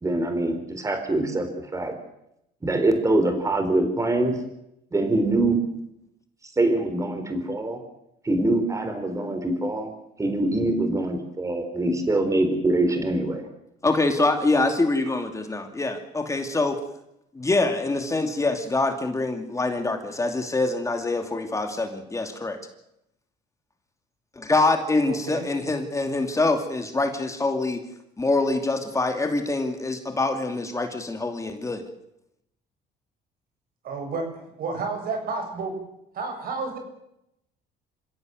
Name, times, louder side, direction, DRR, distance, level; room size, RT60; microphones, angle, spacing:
voice 1, 0.0-1.9 2.6-4.3 4.9-5.6 6.6-7.8 8.2-9.9 10.2-13.4, right 2 dB, 20° right, 7 dB, 4.0 m, -24 dB
voice 2, 13.8-16.8 17.3-22.6 24.4-27.8 28.2-31.8, left 2 dB, 20° left, 5 dB, 2.7 m, -25 dB
voice 3, 25.1-25.4 33.8-34.3 34.6-35.7 36.1-36.8, right 4 dB, 60° right, 5 dB, 7.6 m, -30 dB
27.5 x 16.5 x 7.8 m, 0.80 s
cardioid pair, 110°, 17 cm